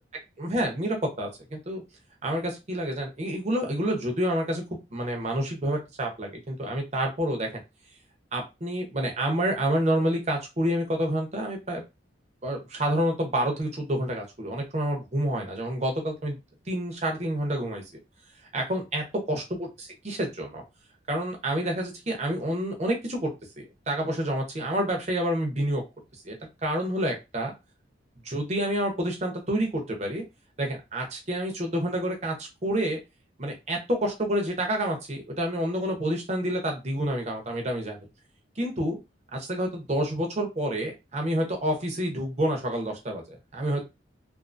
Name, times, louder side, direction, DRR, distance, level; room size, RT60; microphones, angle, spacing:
voice 1, 0.4-1.8 2.2-4.6 4.9-7.5 8.3-11.8 12.4-16.4 16.7-17.8 18.5-20.6 21.1-23.3 23.6-25.8 26.2-26.3 26.6-27.5 28.2-30.2 30.6-33.0 33.4-38.1 38.6-39.0 39.3-43.8, right 1 dB, 35° right, 2 dB, 0.8 m, -28 dB
2.6 x 2.5 x 2.5 m, 0.24 s
head